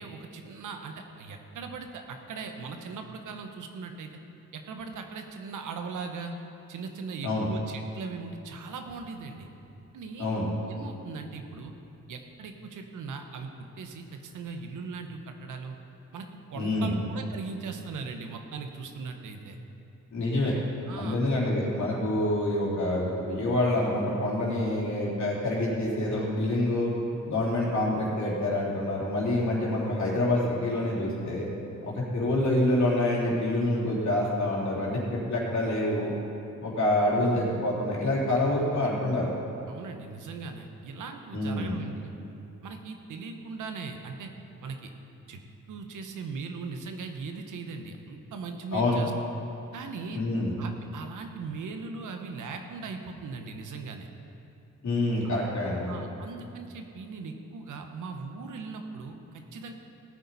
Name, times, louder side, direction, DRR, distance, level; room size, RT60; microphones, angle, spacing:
voice 1, 0.0-4.1 4.5-6.3 6.7-9.5 9.9-10.3 10.7-11.7 12.1-15.8 16.1-19.6 20.9-21.2 31.8-32.0 39.7-42.1 42.6-44.3 44.6-44.9 45.3-45.4 45.7-49.1 49.7-50.2 50.6-54.1 55.9-59.2 59.5-59.7, right 4 dB, 90° right, 5 dB, 1.1 m, -39 dB
voice 2, 16.5-17.0 20.1-20.5 21.0-26.9 27.3-31.5 31.9-36.1 36.6-39.3 41.3-41.7 48.7-49.0 50.1-50.5 54.8-55.9, left 1 dB, 65° left, -5 dB, 3.5 m, -27 dB
17.5 x 9.4 x 4.1 m, 2.7 s
cardioid pair, 80°, 30 cm